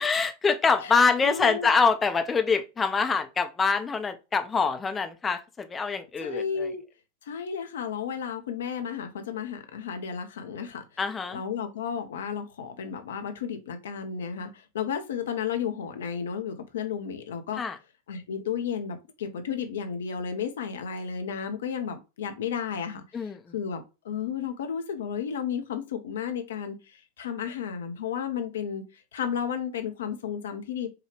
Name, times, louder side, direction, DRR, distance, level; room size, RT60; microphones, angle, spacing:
voice 1, 0.0-6.7 11.0-11.4 17.6-17.8 23.1-23.5, left 5 dB, 15° left, 0.6 m, -25 dB
voice 2, 1.2-1.7 6.2-6.8 7.2-10.8 11.3-17.6 18.1-30.9, left 7 dB, 60° left, 0.7 m, -33 dB
4.6 x 2.3 x 3.2 m
figure-of-eight pair, 90°, 0 cm